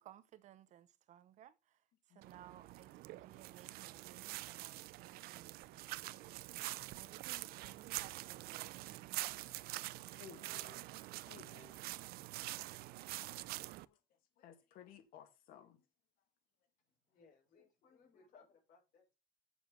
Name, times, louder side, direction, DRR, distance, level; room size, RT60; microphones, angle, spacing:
voice 1, 0.0-1.8 2.1-6.3 6.9-8.9, right 11 dB, 50° right, 0.8 m, -60 dB
sound 1, 2.2-13.9, right 18 dB, 85° right, 0.5 m, -46 dB
voice 2, 10.0-10.8 11.3-11.8 13.1-14.0 14.4-15.8, left 10 dB, 75° left, 2.2 m, -59 dB
voice 3, 16.9-19.1, left 5 dB, 55° left, 5.5 m, -66 dB
7.6 x 7.2 x 5.2 m
cardioid pair, 175°, 15 cm